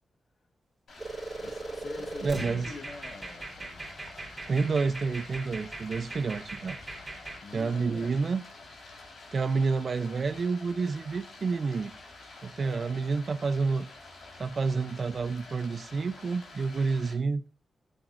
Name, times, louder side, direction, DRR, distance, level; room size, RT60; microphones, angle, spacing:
Stream, 0.9-17.1, left 3 dB, 70° left, 4.2 m, -49 dB
sound 1, 1.0-7.4, right 2 dB, 15° right, 4.1 m, -39 dB
voice 1, 1.4-3.8 7.4-8.1 12.6-13.2, left 4 dB, 50° left, 1.5 m, -45 dB
Growling, 2.1-7.0, right 1 dB, 30° left, 3.5 m, -58 dB
voice 2, 2.2-2.7 4.5-6.8 7.5-8.4 9.3-11.9 12.4-13.9 14.4-17.4, right 4 dB, 45° right, 0.5 m, -29 dB
17.0 x 8.8 x 2.5 m
wide cardioid pair, 150°, 0 cm